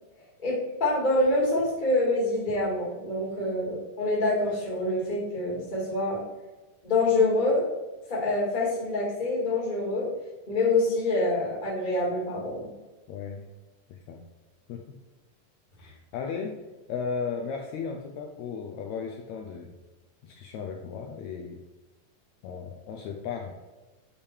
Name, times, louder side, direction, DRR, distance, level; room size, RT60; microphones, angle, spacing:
voice 1, 0.4-6.2 6.8-7.7 8.1-10.1 10.5-12.7, left 2 dB, 20° left, -4 dB, 1.3 m, -26 dB
voice 2, 13.1-13.4 13.9-14.2 14.7-15.0 15.8-16.6 16.9-19.7 20.2-21.6 22.4-23.5, left 6 dB, 85° left, 3 dB, 1.6 m, -35 dB
8.5 x 3.5 x 4.4 m, 1.2 s
omnidirectional pair, 3.9 m